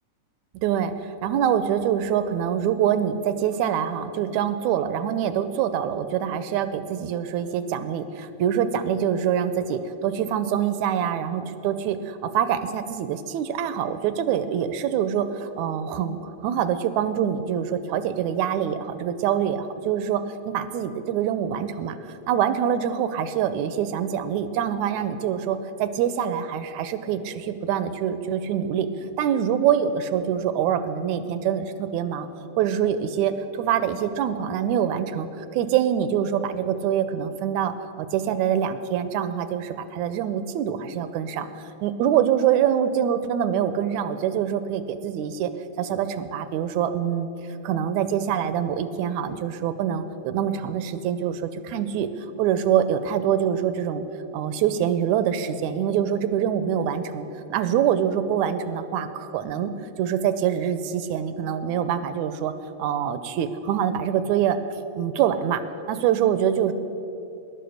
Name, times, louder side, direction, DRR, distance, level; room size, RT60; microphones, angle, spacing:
voice 1, 0.6-28.9 29.2-32.3 32.6-41.5 41.8-45.5 45.8-47.3 47.6-52.1 52.4-54.0 54.3-62.5 62.8-64.6 65.0-65.6 65.9-66.7, right 9 dB, 80° right, 11 dB, 1.8 m, -25 dB
14.5 x 10.5 x 6.4 m, 2.9 s
omnidirectional pair, 3.6 m